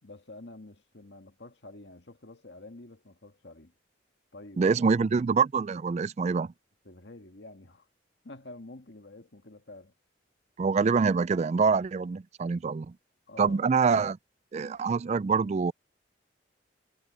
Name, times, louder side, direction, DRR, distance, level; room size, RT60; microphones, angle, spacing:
voice 1, 0.0-3.7 4.3-5.1 6.9-7.9 8.2-9.9 13.3-13.9, left 2 dB, 65° left, 1.8 m, -48 dB
voice 2, 4.6-6.5 10.6-12.9 13.4-14.2 14.5-15.7, right 5 dB, 35° right, 0.3 m, -25 dB
head